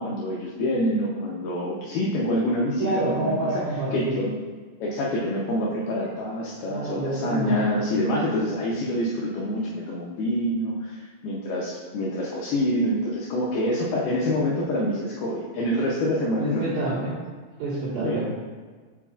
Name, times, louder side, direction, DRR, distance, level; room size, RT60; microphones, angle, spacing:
voice 1, 0.0-3.5 3.9-4.3 4.8-16.6 18.0-18.2, left 1 dB, 80° left, -4 dB, 2.2 m, -26 dB
voice 2, 2.8-4.1 6.7-7.7 16.3-17.1 17.6-18.2, right 2 dB, 60° right, -11 dB, 2.0 m, -28 dB
8.6 x 5.0 x 2.4 m, 1.5 s
omnidirectional pair, 5.3 m